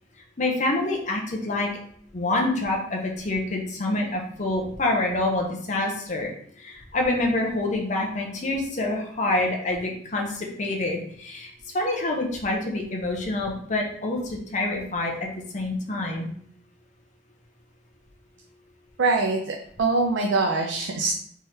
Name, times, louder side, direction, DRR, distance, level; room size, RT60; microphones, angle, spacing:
voice 1, 0.4-1.7 2.1-6.3 6.6-11.5 11.7-15.2 15.5-16.3, left 2 dB, 40° left, 0 dB, 0.8 m, -26 dB
voice 2, 19.0-21.1, right 3 dB, 75° right, 1 dB, 0.5 m, -23 dB
3.6 x 3.2 x 4.2 m, 0.65 s
head